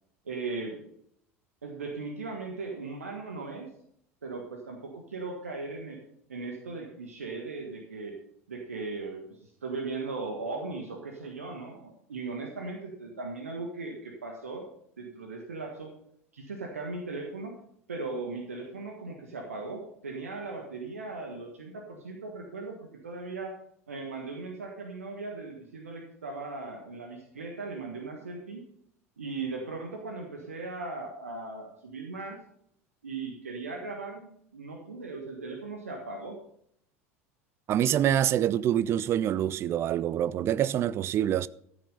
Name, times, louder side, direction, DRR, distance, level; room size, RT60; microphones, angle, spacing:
voice 1, 0.2-0.8 1.6-3.7 4.2-6.0 6.3-8.2 8.5-14.7 15.0-15.9 16.3-17.6 17.9-23.5 23.9-28.6 29.2-32.4 33.0-36.4, right 3 dB, 75° right, 1.5 m, -38 dB
voice 2, 37.7-41.5, right 10 dB, 35° right, 0.4 m, -26 dB
13.5 x 6.8 x 5.5 m
figure-of-eight pair, 75°, 8 cm